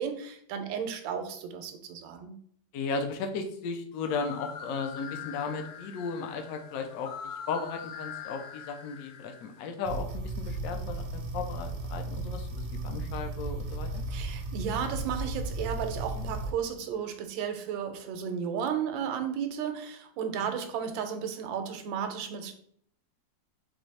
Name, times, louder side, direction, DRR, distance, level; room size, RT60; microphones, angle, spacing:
voice 1, 0.0-2.4 14.1-22.5, right 7 dB, 85° right, 7 dB, 1.3 m, -34 dB
voice 2, 2.7-7.1 7.5-14.0 20.4-20.5, left 4 dB, 70° left, 5 dB, 0.8 m, -35 dB
sound 1, 3.9-9.7, left 7 dB, 85° left, 1.4 m, -43 dB
sound 2, 9.8-16.5, right 2 dB, 65° right, 0.8 m, -35 dB
3.9 x 3.4 x 3.2 m, 0.64 s
omnidirectional pair, 2.1 m